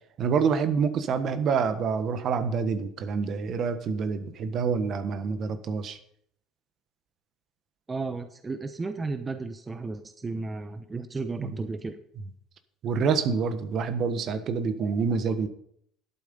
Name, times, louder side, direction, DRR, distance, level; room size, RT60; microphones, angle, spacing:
voice 1, 0.2-6.0 11.4-11.5 12.8-15.5, right 5 dB, 50° right, 10 dB, 1.4 m, -27 dB
voice 2, 7.9-12.0, right 3 dB, 25° right, 9 dB, 0.9 m, -34 dB
11.5 x 8.6 x 5.5 m, 0.68 s
hypercardioid pair, 80°, 0 cm